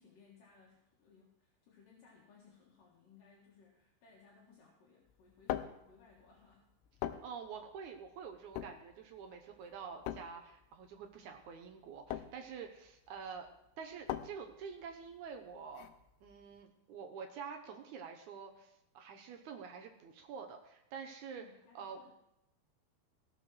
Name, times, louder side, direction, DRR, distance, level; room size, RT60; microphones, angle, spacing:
voice 1, 0.0-7.1 21.3-22.1, left 5 dB, 60° left, -4 dB, 3.1 m, -63 dB
sound 1, 5.1-16.6, left 12 dB, 90° left, 2.6 m, -44 dB
voice 2, 7.2-13.5 13.8-15.9 16.2-21.4 21.7-22.0, right 6 dB, 75° right, 3 dB, 1.8 m, -47 dB
16.5 x 5.7 x 6.3 m, 0.84 s
omnidirectional pair, 4.6 m